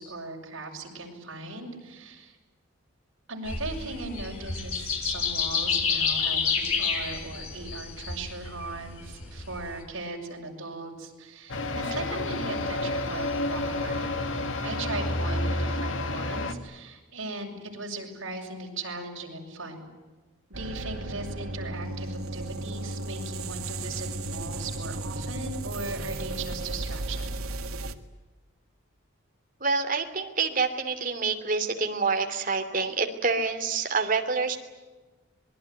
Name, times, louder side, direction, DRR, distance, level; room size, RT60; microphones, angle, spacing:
voice 1, 0.0-2.4 3.3-14.2 14.6-19.8 20.5-27.3, right 2 dB, 65° right, 0 dB, 6.6 m, -38 dB
sound 1, 3.4-9.8, left 5 dB, 85° left, 6.1 m, -29 dB
sound 2, 11.5-16.5, left 2 dB, 65° left, 2.2 m, -30 dB
sound 3, 20.5-28.0, right 2 dB, 90° right, 1.8 m, -34 dB
voice 2, 29.6-34.6, right 4 dB, 40° right, 5 dB, 2.9 m, -27 dB
26.0 x 21.0 x 9.4 m, 1.2 s
head